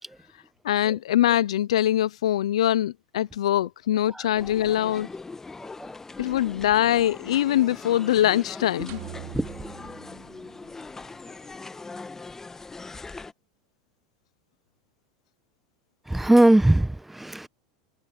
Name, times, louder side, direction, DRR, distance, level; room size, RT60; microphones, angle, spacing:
voice 1, 0.6-5.1 6.2-9.0, left 12 dB, 85° left, 0.5 m, -23 dB
sound 1, 4.3-13.3, left 3 dB, 15° left, 1.4 m, -41 dB
sound 2, 8.9-11.2, right 21 dB, 60° right, 1.6 m, -43 dB
voice 2, 16.1-17.5, right 1 dB, 5° right, 1.0 m, -20 dB
hypercardioid pair, 100°, 3 cm